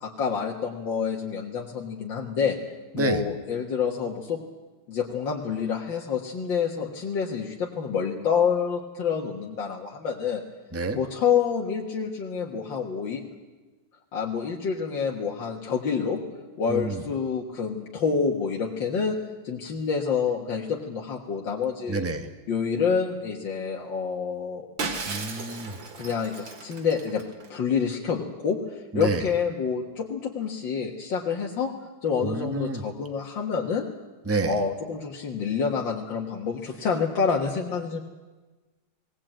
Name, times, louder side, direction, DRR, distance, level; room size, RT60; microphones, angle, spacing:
voice 1, 0.0-2.6 2.9-4.4 4.9-10.4 10.9-13.2 14.1-16.2 16.6-19.2 19.4-22.0 22.5-24.7 25.9-27.2 27.5-31.7 32.0-33.9 34.4-38.0, left 6 dB, 80° left, -1 dB, 2.3 m, -27 dB
voice 2, 16.7-17.0 21.9-22.3 25.1-25.7 28.9-29.2 32.2-32.8 34.2-34.5, right 3 dB, 10° right, 6 dB, 1.2 m, -28 dB
Shatter, 24.8-27.5, right 4 dB, 90° right, 2.7 m, -35 dB
19.5 x 18.0 x 9.0 m, 1.2 s
omnidirectional pair, 2.0 m